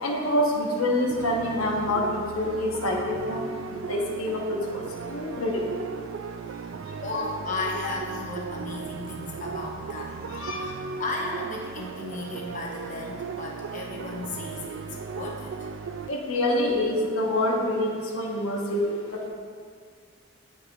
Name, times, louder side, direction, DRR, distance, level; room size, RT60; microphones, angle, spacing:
voice 1, 0.0-3.4 3.9-4.8 5.1-5.7 7.1-7.2 10.3-10.6 16.1-18.9, left 1 dB, 90° left, -1 dB, 1.1 m, -26 dB
sound 1, 1.1-16.1, right 5 dB, 70° right, 0.3 m, -37 dB
voice 2, 7.0-10.7 11.0-15.7, left 2 dB, 40° left, -2 dB, 0.9 m, -35 dB
14.5 x 4.9 x 2.4 m, 2.1 s
head